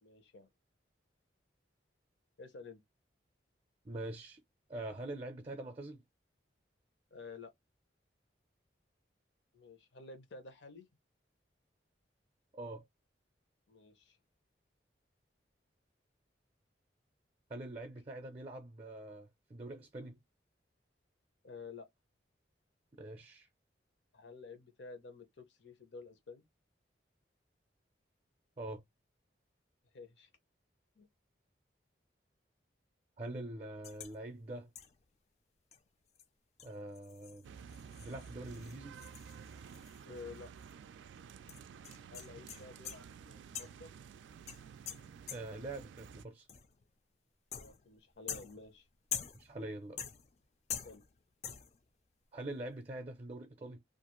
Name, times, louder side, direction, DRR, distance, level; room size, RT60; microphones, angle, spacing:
voice 1, 0.0-0.5 2.4-2.8 7.1-7.5 9.5-10.9 13.7-14.2 21.4-21.9 24.1-26.4 29.9-30.3 31.0-31.1 40.1-40.5 42.1-43.9 47.5-48.9 50.8-51.0, left 4 dB, 80° left, 0.8 m, -51 dB
voice 2, 3.8-4.4 4.7-6.0 12.5-12.8 17.5-20.2 23.0-23.5 28.6-28.8 33.2-34.7 36.6-37.5 38.0-39.0 45.3-46.5 49.4-50.0 52.3-53.8, right 2 dB, 30° right, 0.5 m, -44 dB
sound 1, 33.8-34.2 34.7-35.0 35.7-35.8 36.1-36.2 36.6-40.4 40.6-40.7 41.5-43.1 43.5-43.9 44.5-45.7 46.5-46.8 47.5-47.9 48.3-49.6 50.0-50.4 50.7-51.2 51.4-51.8, left 8 dB, 35° left, 0.3 m, -45 dB
sound 2, 37.4-46.3, right 7 dB, 85° right, 0.3 m, -52 dB
2.5 x 2.4 x 2.9 m
head